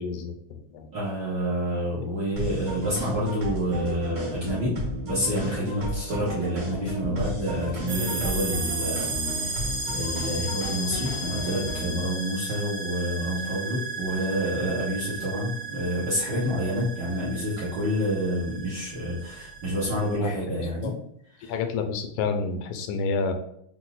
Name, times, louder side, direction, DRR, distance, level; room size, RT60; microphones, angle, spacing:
voice 1, 0.0-0.9 2.0-2.1 2.5-2.6 20.1-20.9 21.4-23.3, left 4 dB, 85° left, 6 dB, 2.0 m, -30 dB
voice 2, 0.9-4.7 5.0-20.9 21.4-21.5, equal, 55° right, -7 dB, 1.3 m, -28 dB
sound 1, 2.4-12.0, equal, 40° right, 1.1 m, -33 dB
sound 2, 7.9-20.2, right 3 dB, 80° right, 2.4 m, -34 dB
6.1 x 2.1 x 3.9 m, 0.72 s
omnidirectional pair, 3.4 m